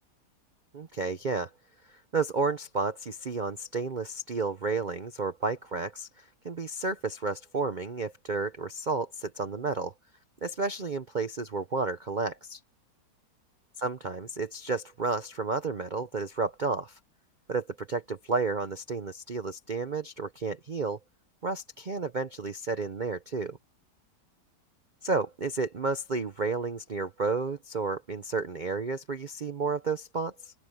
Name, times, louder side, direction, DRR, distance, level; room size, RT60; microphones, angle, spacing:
voice 1, 0.7-1.5 1.9-9.9 10.4-12.6 13.8-17.0 17.5-21.0 21.4-23.6 25.0-30.5, right 4 dB, 45° right, 0.6 m, -31 dB
open air
omnidirectional pair, 1.8 m